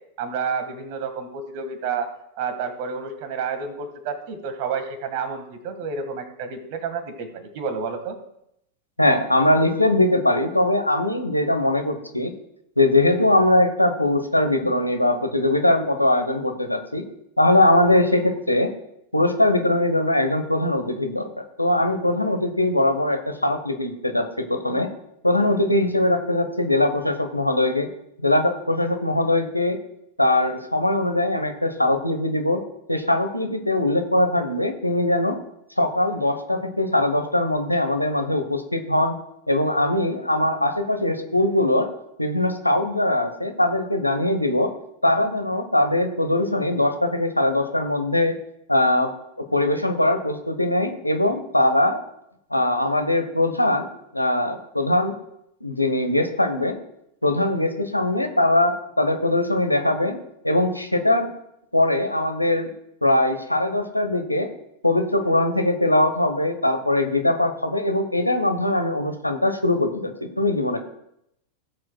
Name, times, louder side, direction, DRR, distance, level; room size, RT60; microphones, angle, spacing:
voice 1, 0.2-2.1 2.4-8.2, right 5 dB, 50° right, 8 dB, 1.6 m, -30 dB
voice 2, 9.0-12.3 12.8-17.0 17.4-18.7 19.1-24.9 25.2-27.9 28.2-29.8 30.2-32.6 32.9-35.4 35.8-39.2 39.5-41.9 42.2-44.7 45.0-48.3 48.7-49.1 49.4-52.0 52.5-55.2 55.6-56.8 57.2-61.3 61.7-62.7 63.0-64.5 64.8-70.8, left 1 dB, 85° left, 6 dB, 1.0 m, -21 dB
17.5 x 7.6 x 2.2 m, 0.79 s
figure-of-eight pair, 90°, 0 cm